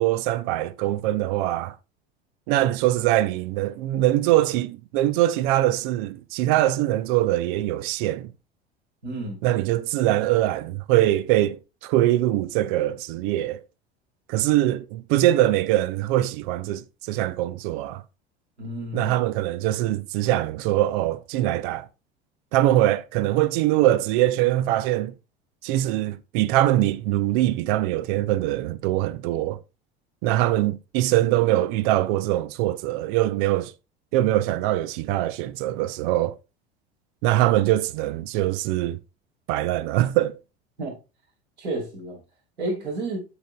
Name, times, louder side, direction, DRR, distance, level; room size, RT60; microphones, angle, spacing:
voice 1, 0.0-1.7 2.5-8.3 9.4-13.6 14.3-18.0 18.9-21.9 22.5-25.1 25.6-29.6 30.2-33.7 34.1-36.4 37.2-39.0 39.5-40.4, right 14 dB, 50° right, 0.6 m, -23 dB
voice 2, 9.0-9.4 18.6-19.2 40.8-40.9 41.6-42.2 42.6-43.3, right 2 dB, 80° right, 3.7 m, -31 dB
13.0 x 5.1 x 2.3 m
figure-of-eight pair, 75°, 32 cm